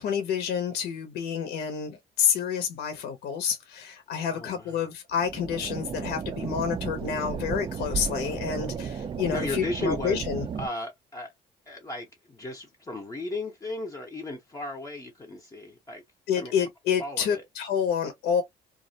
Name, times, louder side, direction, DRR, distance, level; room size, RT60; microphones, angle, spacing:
voice 1, 0.0-10.4 16.3-18.4, left 7 dB, 75° left, 0.6 m, -28 dB
voice 2, 4.3-4.9 9.3-10.3 10.5-11.3 11.7-16.0 16.4-16.5 17.0-17.4, left 2 dB, 20° left, 0.6 m, -35 dB
sound 1, 5.2-10.7, right 6 dB, 30° right, 0.3 m, -34 dB
2.4 x 2.0 x 2.6 m
cardioid pair, 110°, 17 cm